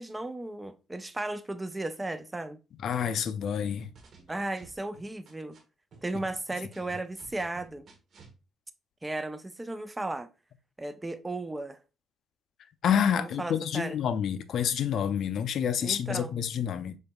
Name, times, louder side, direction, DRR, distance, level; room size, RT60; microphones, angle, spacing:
voice 1, 0.0-2.6 4.3-5.6 6.0-7.9 9.0-10.3 10.8-11.8 13.2-14.0 15.8-16.3, right 2 dB, 15° right, 0.4 m, -35 dB
voice 2, 2.8-3.9 12.8-17.0, left 8 dB, 65° left, 0.4 m, -28 dB
sound 1, 3.6-5.6 5.9-8.3, right 4 dB, 50° right, 1.3 m, -53 dB
5.2 x 4.0 x 2.3 m
cardioid pair, 100°, 0 cm